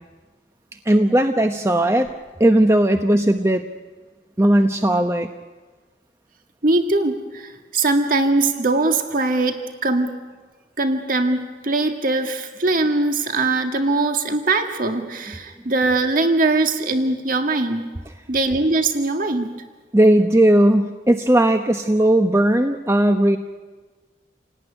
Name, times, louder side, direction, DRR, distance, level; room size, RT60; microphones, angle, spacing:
voice 1, 0.8-2.1 2.4-3.6 4.4-5.3 19.9-23.4, right 1 dB, 15° right, 6 dB, 0.9 m, -17 dB
voice 2, 6.6-10.1 10.8-17.8 18.3-19.5, right 2 dB, 50° right, 5 dB, 1.9 m, -21 dB
28.5 x 18.5 x 9.9 m, 1.3 s
head